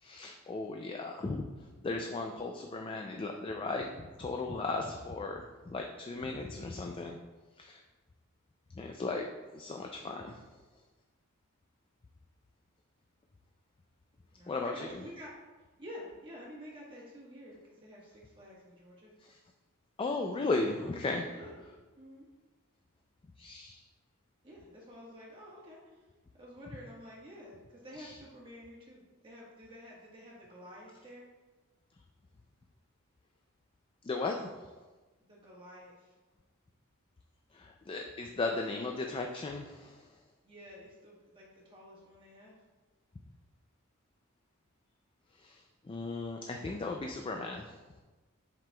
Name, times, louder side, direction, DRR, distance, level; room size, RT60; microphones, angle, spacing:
voice 1, 0.0-1.5 1.8-7.2 7.6-7.8 8.8-10.4 14.5-15.0 19.2-19.4 20.0-21.2 23.4-23.8 28.0-28.2 34.0-34.5 37.5-40.1 45.4-47.8, left 3 dB, 25° left, 3 dB, 0.3 m, -36 dB
voice 2, 14.3-15.3 15.8-19.1 21.3-21.6 22.0-22.3 24.4-26.0 26.3-31.3 35.2-36.1 40.4-42.6, equal, 25° right, -6 dB, 1.4 m, -50 dB
7.5 x 5.9 x 2.3 m, 1.3 s
head